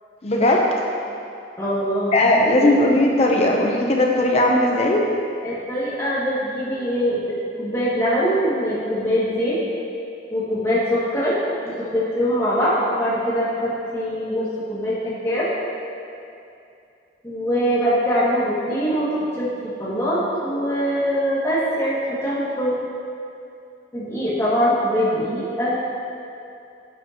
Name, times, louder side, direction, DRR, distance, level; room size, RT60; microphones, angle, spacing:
voice 1, 0.2-0.7 2.1-5.0, left 1 dB, 35° left, 0 dB, 0.7 m, -18 dB
voice 2, 1.6-2.1 2.6-2.7 5.4-7.2 7.6-9.6 10.3-11.3 11.6-15.5 17.2-19.1 19.4-22.7 23.9-25.7, equal, 15° left, -9 dB, 2.2 m, -23 dB
11.0 x 8.1 x 3.0 m, 2.6 s
head